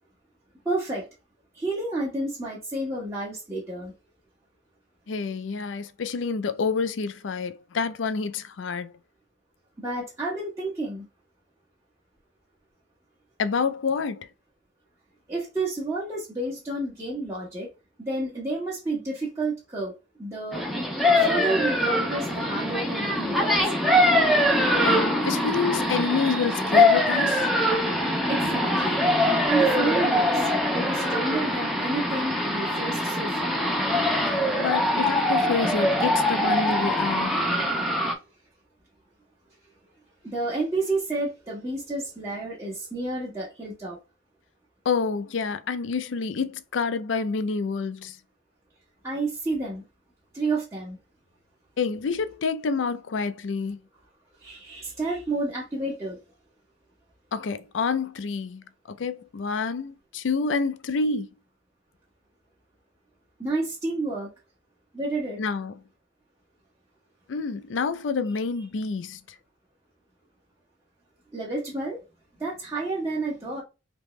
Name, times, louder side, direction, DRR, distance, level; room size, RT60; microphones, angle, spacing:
voice 1, 0.6-1.1 1.5-3.9 9.8-11.1 15.3-17.7 18.0-19.9 20.2-20.6 21.2-23.5 28.3-33.6 40.2-44.0 49.0-49.8 50.3-51.0 54.4-56.2 63.4-64.3 64.9-65.4 71.3-72.0 72.4-73.6, right 2 dB, 15° right, 1.0 m, -30 dB
voice 2, 5.1-8.9 13.4-14.3 24.8-27.5 34.6-37.5 44.8-48.2 51.8-53.8 57.3-61.3 65.4-65.7 67.3-69.2, left 5 dB, 90° left, 0.4 m, -28 dB
sound 1, 20.5-38.1, left 1 dB, ahead, 0.7 m, -23 dB
3.5 x 2.9 x 3.0 m
head